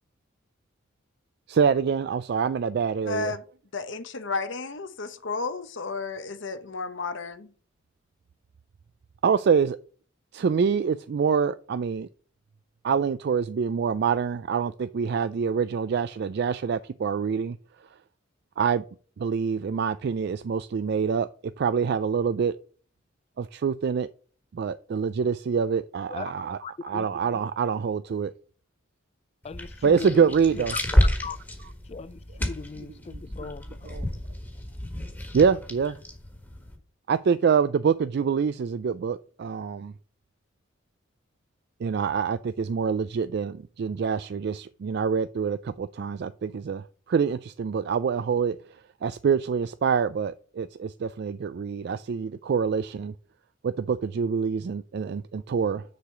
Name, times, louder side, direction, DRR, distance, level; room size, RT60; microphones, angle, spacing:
voice 1, 1.5-3.3 9.2-9.8 10.3-12.1 12.8-17.6 18.6-18.8 19.2-21.3 21.6-22.5 23.4-24.1 24.5-28.3 29.8-30.7 33.1-33.2 33.9-34.1 35.3-36.0 37.1-39.9 41.8-48.8 49.0-53.1 53.6-55.8, right 6 dB, 55° right, 0.3 m, -26 dB
voice 2, 3.1-3.4 3.7-7.5, left 4 dB, 65° left, 0.9 m, -32 dB
voice 3, 26.6-27.1 29.4-30.6 31.2-31.4 31.8-34.0, left 4 dB, 30° left, 0.4 m, -39 dB
sound 1, 29.4-36.8, left 1 dB, 10° left, 1.6 m, -30 dB
6.7 x 4.8 x 6.9 m
head